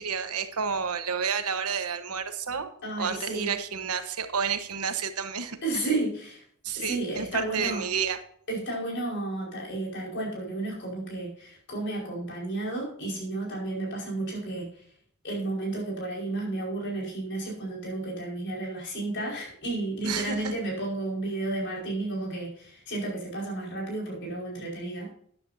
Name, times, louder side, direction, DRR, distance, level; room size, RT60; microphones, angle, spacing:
voice 1, 0.0-2.7 3.0-5.9 6.6-8.2 20.0-20.5, right 6 dB, 80° right, 8 dB, 1.2 m, -30 dB
voice 2, 2.8-3.5 5.6-6.4 6.7-7.8 8.5-14.8 15.2-25.1, right 2 dB, 55° left, -1 dB, 5.1 m, -32 dB
13.5 x 9.9 x 2.7 m, 0.63 s
head